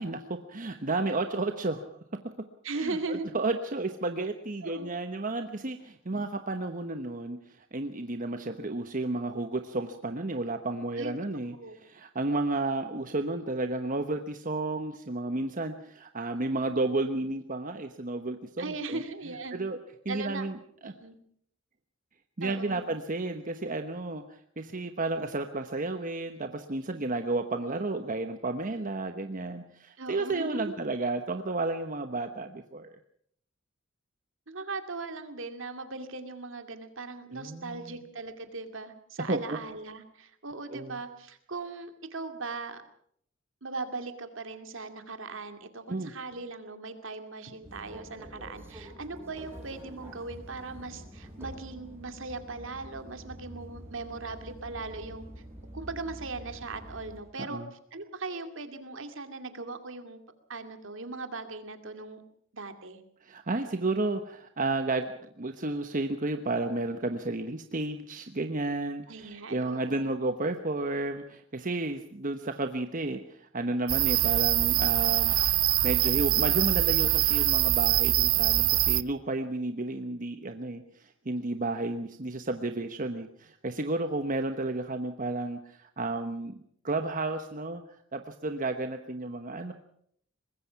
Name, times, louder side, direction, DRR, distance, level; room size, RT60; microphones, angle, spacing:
voice 1, 0.0-2.0 2.8-19.0 19.5-19.8 20.0-20.9 22.4-32.9 37.3-38.0 39.3-39.6 40.7-41.0 45.9-46.1 57.4-57.7 63.2-75.3 75.8-86.5 86.8-87.8 88.1-89.7, right 2 dB, 40° right, 7 dB, 1.1 m, -32 dB
voice 2, 2.6-3.3 4.6-4.9 10.9-11.1 11.5-11.8 18.6-19.7 20.1-20.5 20.8-21.2 22.4-22.9 30.0-30.8 34.5-42.8 43.6-55.3 55.7-57.6 57.9-60.2 60.5-62.2 62.5-63.0 69.1-70.1, right 3 dB, 65° right, 7 dB, 2.5 m, -39 dB
sound 1, 47.6-57.2, equal, 10° right, 6.0 m, -46 dB
sound 2, 73.9-79.0, right 15 dB, 85° right, 0.7 m, -24 dB
23.5 x 20.5 x 5.8 m, 0.66 s
head